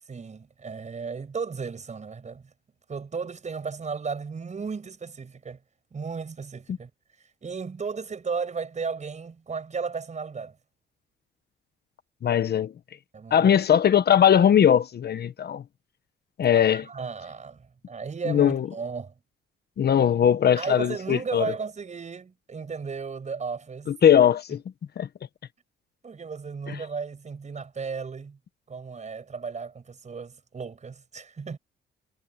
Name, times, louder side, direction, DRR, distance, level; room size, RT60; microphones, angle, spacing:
voice 1, 0.1-2.5 2.9-5.6 5.9-6.9 7.4-10.6 13.1-13.5 16.5-19.1 20.6-23.9 26.0-28.4 28.7-31.6, right 5 dB, 35° right, 6.0 m, -35 dB
voice 2, 12.2-12.7 13.3-15.6 16.4-16.8 18.3-18.7 19.8-21.5 23.9-24.6 25.0-25.1, left 9 dB, 55° left, 1.3 m, -20 dB
cardioid pair, 90°, 20 cm